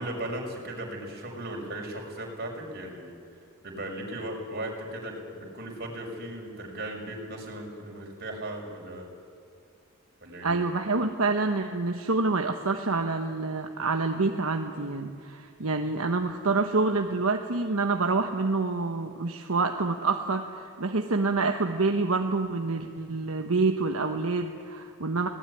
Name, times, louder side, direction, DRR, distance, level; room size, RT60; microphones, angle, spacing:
voice 1, 0.0-3.2 3.6-9.0 10.2-10.6, right 1 dB, 50° right, 0 dB, 6.1 m, -37 dB
voice 2, 10.4-25.3, right 3 dB, 75° right, 4 dB, 1.2 m, -27 dB
25.0 x 19.0 x 9.9 m, 2.4 s
head